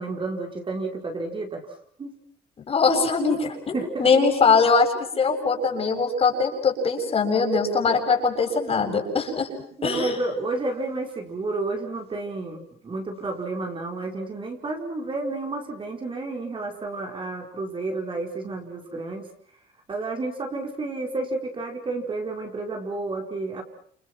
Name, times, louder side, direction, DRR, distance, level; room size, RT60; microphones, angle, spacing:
voice 1, 0.0-1.6 2.0-2.1 3.7-4.1 9.8-19.3 19.9-23.6, right 2 dB, 30° right, 2 dB, 4.9 m, -31 dB
voice 2, 2.7-9.5 9.8-10.1, left 4 dB, 35° left, 3 dB, 7.4 m, -22 dB
30.0 x 29.5 x 6.1 m, 0.63 s
cardioid pair, 110°, 17 cm